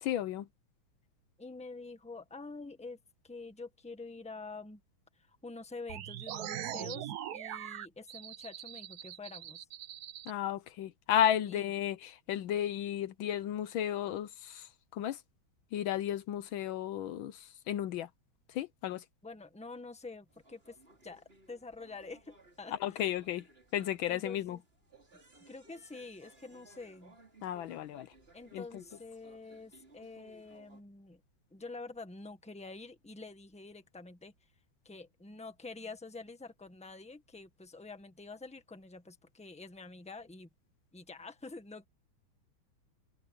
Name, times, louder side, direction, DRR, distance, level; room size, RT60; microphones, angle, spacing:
voice 1, 0.0-0.5 10.3-15.2 15.7-18.1 18.5-19.0 22.7-23.5 23.7-24.6 27.4-28.1 28.5-28.8, left 10 dB, 75° left, 1.4 m, -33 dB
voice 2, 1.4-3.0 3.2-4.8 5.4-9.7 11.5-11.7 19.2-20.7 21.0-22.7 24.1-24.6 25.5-27.1 28.3-31.2 31.5-34.3 34.8-40.5 40.9-41.9, left 3 dB, 5° left, 1.3 m, -47 dB
sound 1, 5.9-10.3, right 11 dB, 60° right, 1.0 m, -42 dB
sound 2, 20.3-30.8, right 1 dB, 25° right, 4.5 m, -61 dB
open air
omnidirectional pair, 2.3 m